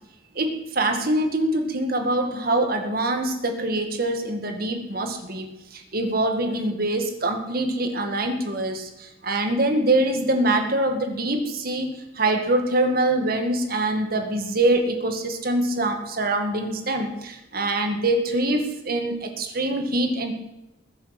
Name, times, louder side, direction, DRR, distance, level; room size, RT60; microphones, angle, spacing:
voice 1, 0.4-20.3, right 1 dB, 50° right, 5 dB, 2.0 m, -24 dB
21.0 x 7.6 x 6.0 m, 0.96 s
head